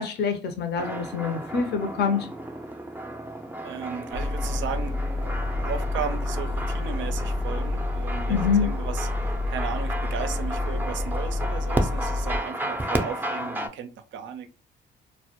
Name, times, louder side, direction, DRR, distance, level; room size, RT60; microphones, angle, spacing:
voice 1, 0.0-2.3 8.3-8.7, left 6 dB, 55° left, 0.5 m, -25 dB
sound 1, 0.8-13.7, right 1 dB, 10° right, 0.4 m, -33 dB
voice 2, 3.6-14.5, right 8 dB, 75° right, 0.4 m, -36 dB
sound 2, 4.1-12.4, left 2 dB, 85° left, 0.8 m, -29 dB
2.1 x 2.1 x 2.8 m
cardioid pair, 90°, 20 cm